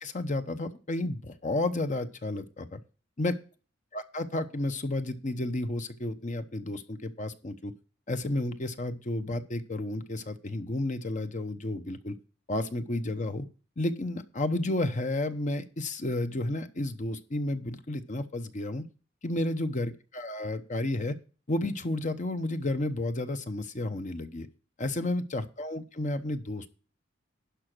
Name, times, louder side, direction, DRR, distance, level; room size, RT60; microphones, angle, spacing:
voice 1, 0.0-2.8 3.2-3.3 3.9-7.7 8.1-12.1 12.5-13.5 13.8-18.8 19.2-21.1 21.5-24.5 24.8-26.7, left 1 dB, 40° left, 9 dB, 0.8 m, -32 dB
11.5 x 5.0 x 6.1 m, 0.36 s
head